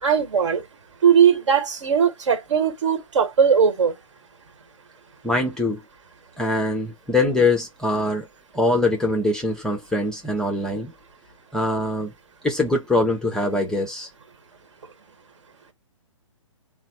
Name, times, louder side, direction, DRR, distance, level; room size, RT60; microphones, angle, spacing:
voice 1, 0.0-0.6 1.0-3.9, right 7 dB, 60° right, 1.3 m, -19 dB
voice 2, 5.2-5.8 6.4-8.3 8.5-10.9 11.5-12.1 12.4-14.1, left 2 dB, 5° left, 0.5 m, -23 dB
4.0 x 2.1 x 4.2 m
figure-of-eight pair, 130°, 17 cm